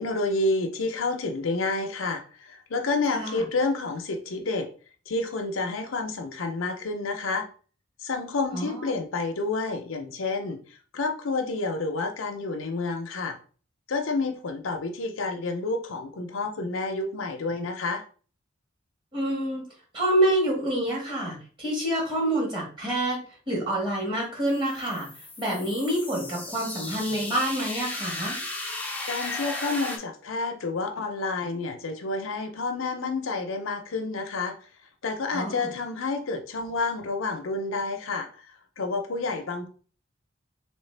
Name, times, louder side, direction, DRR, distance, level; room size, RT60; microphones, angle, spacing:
voice 1, 0.0-4.7 5.1-7.5 8.0-10.6 10.9-13.3 13.9-18.0 29.1-34.5 35.0-38.3 38.8-39.7, left 3 dB, 85° left, 5 dB, 0.6 m, -29 dB
voice 2, 3.1-3.4 8.5-8.8 19.1-19.6 19.9-25.1 25.4-28.4 35.3-35.7, right 1 dB, 25° right, -2 dB, 1.6 m, -27 dB
sound 1, 24.5-30.0, left 2 dB, 10° left, 0.6 m, -35 dB
3.2 x 3.2 x 3.3 m, 0.40 s
head